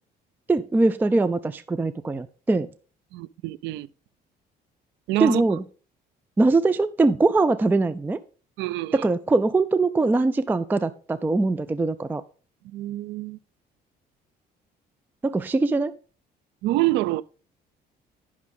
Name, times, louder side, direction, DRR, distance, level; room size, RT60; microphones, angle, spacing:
voice 1, 0.5-2.7 5.2-5.6 6.4-8.2 8.9-12.2 15.2-15.9, right 3 dB, 10° right, 0.3 m, -22 dB
voice 2, 3.1-3.9 5.1-5.4 8.6-9.0 12.7-13.4 16.6-17.2, right 17 dB, 90° right, 0.4 m, -26 dB
10.5 x 6.0 x 3.7 m
cardioid pair, 125°, 18 cm